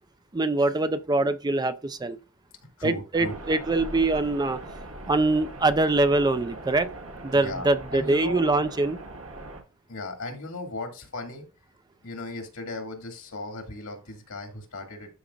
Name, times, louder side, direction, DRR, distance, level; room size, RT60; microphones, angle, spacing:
voice 1, 0.3-2.2 2.8-4.6 5.1-6.9 7.2-9.0, right 2 dB, 20° right, 0.5 m, -24 dB
voice 2, 2.8-3.6 7.3-8.4 9.9-11.5 12.0-15.1, left 2 dB, 75° left, 2.2 m, -36 dB
sound 1, 3.1-9.6, right 2 dB, 80° right, 1.8 m, -41 dB
12.5 x 5.1 x 2.4 m
head